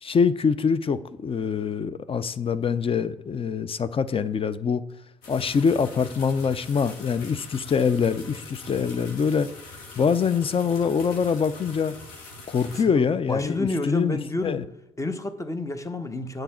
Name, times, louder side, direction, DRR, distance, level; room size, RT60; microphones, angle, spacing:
voice 1, 0.0-4.8 5.3-9.5 10.0-11.9 12.5-14.6, left 6 dB, 40° left, 0.6 m, -24 dB
sound 1, 5.2-12.8, left 3 dB, 80° left, 1.6 m, -43 dB
voice 2, 12.7-14.6 15.0-16.4, left 2 dB, 20° left, 1.1 m, -30 dB
9.1 x 7.8 x 4.4 m
hypercardioid pair, 50°, 15 cm